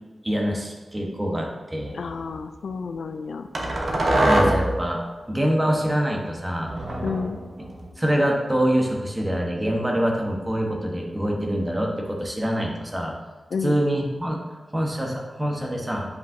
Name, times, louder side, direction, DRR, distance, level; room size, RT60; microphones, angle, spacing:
voice 1, 0.2-1.9 4.3-5.0 5.3-6.7 8.0-13.1 13.6-14.4 14.7-16.2, equal, 15° right, 0 dB, 1.1 m, -25 dB
voice 2, 1.9-3.5 7.0-7.4 13.5-13.8, left 5 dB, 85° left, 8 dB, 0.4 m, -30 dB
sound 1, 1.9-2.2 3.5-4.8 6.7-7.9, right 1 dB, 55° right, 1.1 m, -23 dB
8.1 x 5.3 x 2.7 m, 1.2 s
wide cardioid pair, 105°, 0 cm